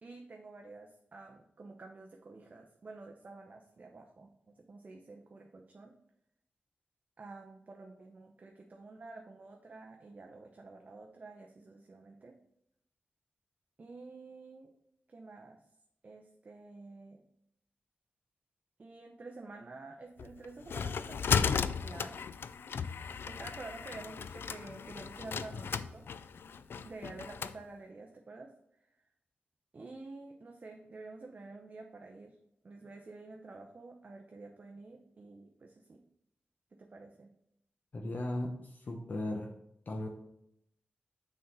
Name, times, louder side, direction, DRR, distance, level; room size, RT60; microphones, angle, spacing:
voice 1, 0.0-6.0 7.2-12.4 13.8-14.7 15.1-15.6 16.0-17.2 18.8-22.2 23.3-26.1 26.8-28.5 28.8-28.9 29.7-32.4 32.6-36.0 36.7-37.3, right 3 dB, 45° right, 2 dB, 0.7 m, -49 dB
sound 1, 20.2-27.6, left 6 dB, 80° left, 0.3 m, -35 dB
voice 2, 37.9-39.5 39.9-40.1, left 1 dB, 50° left, 1 dB, 0.8 m, -37 dB
6.4 x 4.0 x 5.3 m, 0.78 s
wide cardioid pair, 105°, 4 cm